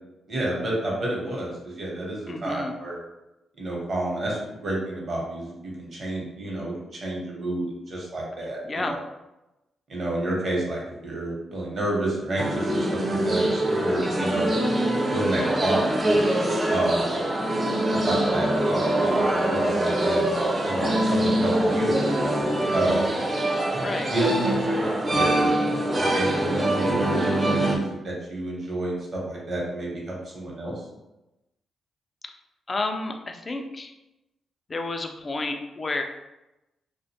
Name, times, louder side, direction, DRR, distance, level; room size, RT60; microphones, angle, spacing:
voice 1, 0.3-3.0 3.6-9.0 9.9-14.5 15.1-17.1 17.9-20.3 20.6-23.1 24.1-25.5 26.1-27.3 27.6-30.7, right 1 dB, 55° right, -3 dB, 0.9 m, -30 dB
voice 2, 2.3-2.7 8.6-9.0 14.0-14.4 23.8-24.1 32.7-33.9 34.7-36.0, left 2 dB, 40° left, 4 dB, 0.4 m, -31 dB
sound 1, 12.4-27.8, right 1 dB, 35° right, 0.5 m, -23 dB
2.4 x 2.1 x 2.8 m, 0.96 s
cardioid pair, 60°, 0 cm